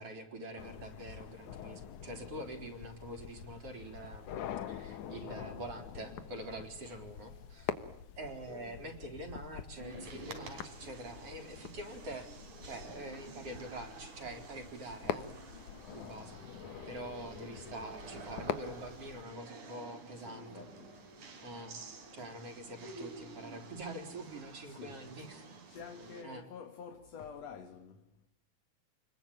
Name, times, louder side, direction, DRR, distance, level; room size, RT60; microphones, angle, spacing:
voice 1, 0.0-4.4 4.7-7.7 8.2-12.3 12.6-15.3 15.9-16.4 16.9-20.6 21.4-21.7 22.1-25.4 26.2-26.4, right 1 dB, 50° right, 4.7 m, -45 dB
sound 1, 0.6-19.2, left 9 dB, 85° left, 2.9 m, -45 dB
voice 2, 6.9-7.4 9.9-10.8 11.2-11.4 20.1-20.9 21.9-22.3 24.6-25.3 25.7-28.0, left 6 dB, 60° left, 2.9 m, -50 dB
sound 2, 9.8-26.2, right 3 dB, 85° right, 5.1 m, -50 dB
30.0 x 21.5 x 9.0 m
omnidirectional pair, 3.4 m